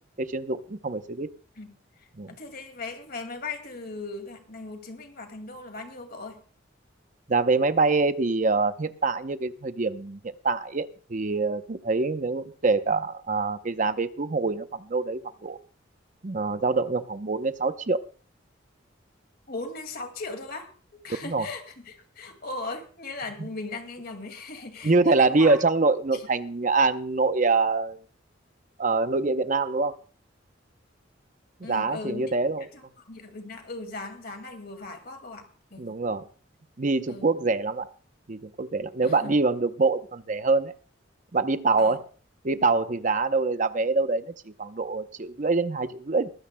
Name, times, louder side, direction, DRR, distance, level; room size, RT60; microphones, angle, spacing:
voice 1, 0.2-1.3 2.2-2.3 7.3-15.6 16.2-18.0 21.2-21.5 23.4-23.5 24.8-28.0 28.8-30.0 31.7-32.7 35.8-36.2 36.8-37.9 38.3-40.7 41.3-42.0 42.4-46.3, right 3 dB, 40° right, 11 dB, 0.7 m, -25 dB
voice 2, 2.3-6.4 19.5-25.6 31.6-35.5 35.7-35.9 37.1-37.3 39.0-39.3 41.8-42.0, left 3 dB, 50° left, 6 dB, 2.2 m, -38 dB
21.0 x 14.5 x 2.2 m, 0.39 s
head